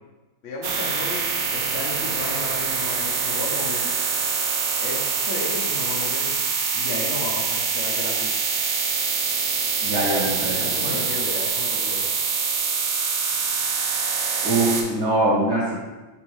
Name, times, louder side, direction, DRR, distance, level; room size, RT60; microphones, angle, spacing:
voice 1, 0.4-3.9 4.8-6.3 6.7-8.3 10.6-12.1, left 3 dB, 75° left, -3 dB, 0.6 m, -33 dB
sound 1, 0.6-14.8, right 5 dB, 80° right, 0.7 m, -25 dB
voice 2, 9.8-11.0 14.4-15.7, right 1 dB, 45° right, -5 dB, 1.0 m, -23 dB
6.0 x 2.7 x 3.1 m, 1.2 s
omnidirectional pair, 2.2 m